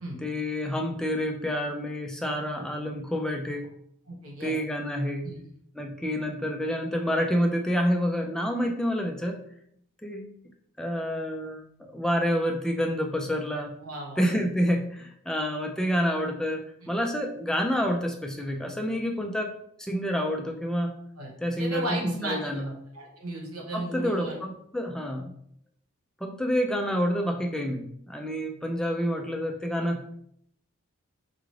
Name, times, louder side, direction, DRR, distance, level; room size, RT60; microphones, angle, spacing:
voice 1, 0.2-3.7 4.4-5.4 5.8-9.4 10.0-10.3 10.8-13.8 14.2-19.5 19.8-20.9 21.4-22.7 23.7-25.3 26.2-30.1, equal, 5° left, 2 dB, 0.3 m, -28 dB
voice 2, 4.1-4.5 5.2-5.4 13.8-14.3 21.2-24.4, right 1 dB, 85° right, -1 dB, 1.2 m, -35 dB
4.7 x 2.5 x 3.1 m, 0.69 s
head